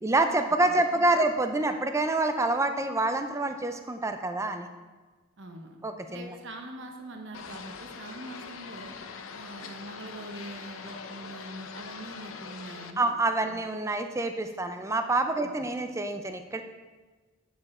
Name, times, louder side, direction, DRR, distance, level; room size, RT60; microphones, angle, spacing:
voice 1, 0.0-4.7 5.8-6.3 13.0-16.6, right 2 dB, 15° right, 7 dB, 0.5 m, -27 dB
voice 2, 0.7-1.2 5.4-5.8 6.1-8.9 9.3-13.1 13.5-13.6 15.4-15.7, right 1 dB, 60° right, 3 dB, 0.9 m, -43 dB
sound 1, 7.3-12.9, left 5 dB, 75° left, 0.7 m, -43 dB
8.7 x 7.2 x 4.2 m, 1.3 s
head